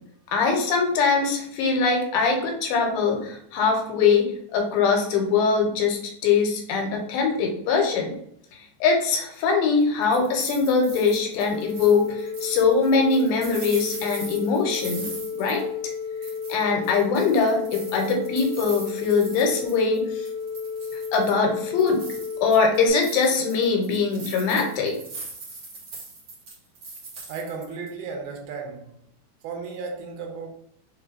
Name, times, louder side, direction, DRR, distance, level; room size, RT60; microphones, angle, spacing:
voice 1, 0.3-8.1 8.8-15.7 16.5-20.3 21.1-22.0 22.4-25.0, left 4 dB, 80° left, 2.5 m, -22 dB
sound 1, 9.8-15.9 16.2-20.0 20.2-21.4 21.8-27.9, right 3 dB, 60° right, 1.3 m, -40 dB
sound 2, 11.5-22.9, left 6 dB, 75° right, 2.3 m, -33 dB
voice 2, 27.3-28.9 29.4-30.5, right 5 dB, 90° right, 2.7 m, -34 dB
6.2 x 2.6 x 2.6 m
omnidirectional pair, 4.4 m